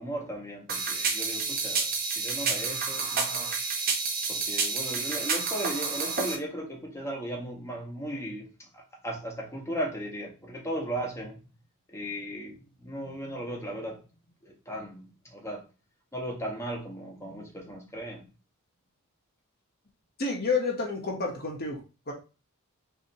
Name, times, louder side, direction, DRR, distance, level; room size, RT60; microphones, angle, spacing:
voice 1, 0.0-3.5 4.3-11.4 11.9-14.0 14.4-15.7 16.1-18.3, right 1 dB, 15° left, 1.3 m, -36 dB
sound 1, 0.7-6.4, right 5 dB, 45° right, 1.0 m, -29 dB
voice 2, 20.2-21.8 22.1-22.2, left 4 dB, 45° left, 1.3 m, -29 dB
5.6 x 3.0 x 3.1 m
head